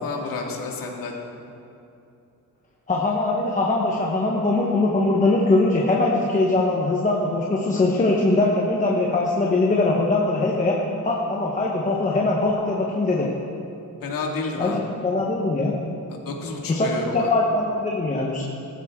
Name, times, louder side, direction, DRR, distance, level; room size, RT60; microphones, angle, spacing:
voice 1, 0.0-1.1 14.0-14.8 16.1-17.3, left 4 dB, 90° left, 0 dB, 2.2 m, -30 dB
voice 2, 2.9-10.8 11.0-13.3 14.6-15.7 16.7-18.4, left 2 dB, 25° left, -3 dB, 1.1 m, -21 dB
18.5 x 14.5 x 3.7 m, 2.8 s
wide cardioid pair, 175°, 33 cm